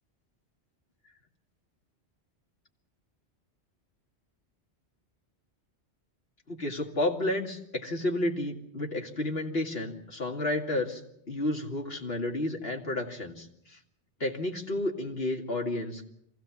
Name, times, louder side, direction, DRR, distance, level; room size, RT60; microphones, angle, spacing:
voice 1, 6.5-11.0 11.3-13.8 14.2-16.0, left 1 dB, 60° left, 1 dB, 2.6 m, -31 dB
24.5 x 15.5 x 7.2 m, 0.75 s
omnidirectional pair, 1.2 m